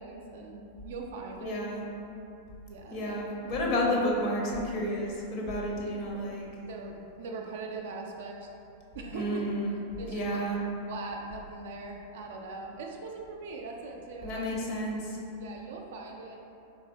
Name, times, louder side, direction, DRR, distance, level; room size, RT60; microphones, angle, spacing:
voice 1, 0.0-1.6 2.7-3.7 6.6-8.5 8.9-9.4 10.0-10.6 10.9-14.7 15.4-16.4, right 3 dB, 55° right, 1 dB, 0.4 m, -41 dB
voice 2, 1.4-1.8 2.9-6.5 9.1-9.8 10.0-10.6 14.2-15.2, equal, 40° left, -2 dB, 0.6 m, -31 dB
3.8 x 3.2 x 2.4 m, 2.8 s
figure-of-eight pair, 90°, 0 cm